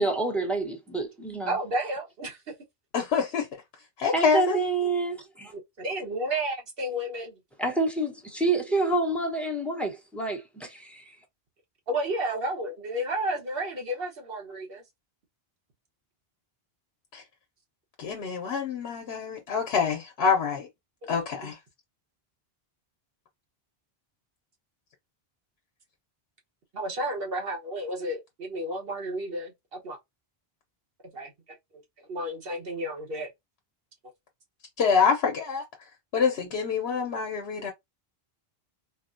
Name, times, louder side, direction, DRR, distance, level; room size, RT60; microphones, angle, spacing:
voice 1, 0.0-1.6 4.1-5.5 7.6-11.2, right 2 dB, ahead, 0.9 m, -28 dB
voice 2, 1.5-2.5 5.5-7.4 11.9-14.8 21.4-21.5 26.7-30.0 31.1-31.3 32.1-33.3, right 1 dB, 65° right, 1.3 m, -32 dB
voice 3, 2.9-3.5 4.0-4.6 17.1-17.2 18.0-20.7 21.1-21.6 34.8-35.6 36.1-37.7, left 6 dB, 80° left, 0.9 m, -26 dB
3.9 x 2.1 x 2.5 m
omnidirectional pair, 1.0 m